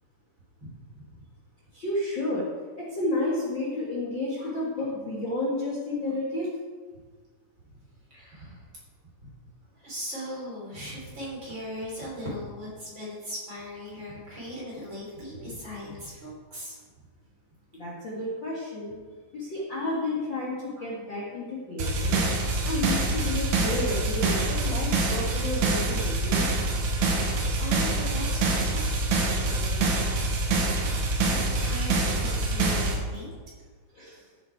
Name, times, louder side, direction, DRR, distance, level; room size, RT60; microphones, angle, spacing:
voice 1, 0.6-1.1 4.4-4.5 8.1-8.7 9.2-9.3 9.7-17.1 20.8-20.9 27.6-30.0 30.4-33.3, equal, 30° right, -5 dB, 3.9 m, -39 dB
voice 2, 1.7-2.5 2.8-6.5 17.7-18.9 19.3-22.2 22.6-26.5 28.3-28.4 33.9-34.2, left 2 dB, 40° left, -6 dB, 1.9 m, -31 dB
sound 1, 21.8-32.9, right 2 dB, 60° right, 2.4 m, -25 dB
14.0 x 7.6 x 4.7 m, 1.5 s
omnidirectional pair, 4.3 m